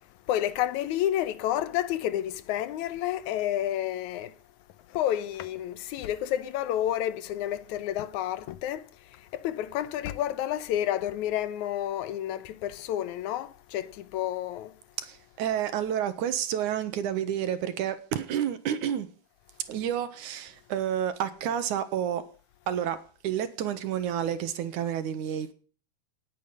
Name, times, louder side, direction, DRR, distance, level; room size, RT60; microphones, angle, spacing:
voice 1, 0.3-4.3 4.9-14.7, left 12 dB, 75° left, 2.1 m, -30 dB
voice 2, 15.0-19.1 19.7-22.2 22.7-23.0 23.2-25.5, right 9 dB, 80° right, 2.8 m, -30 dB
18.5 x 8.8 x 5.4 m
omnidirectional pair, 3.5 m